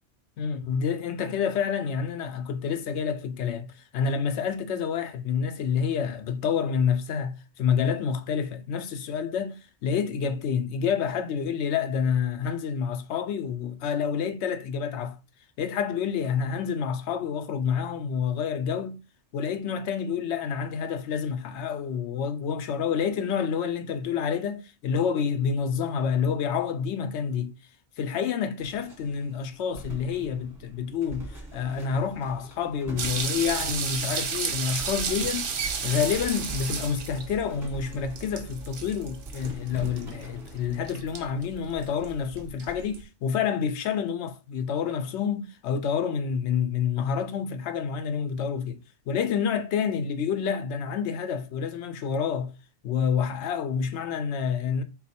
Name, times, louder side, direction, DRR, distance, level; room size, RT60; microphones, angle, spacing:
voice 1, 0.4-15.2 15.6-19.0 19.3-27.5 28.0-48.8 49.1-52.5 52.8-54.8, left 7 dB, 65° left, 0.8 m, -28 dB
sound 1, 28.6-42.1, right 2 dB, 15° right, 1.0 m, -42 dB
sound 2, 33.0-43.0, right 6 dB, 50° right, 0.8 m, -33 dB
4.1 x 2.3 x 4.2 m
omnidirectional pair, 1.3 m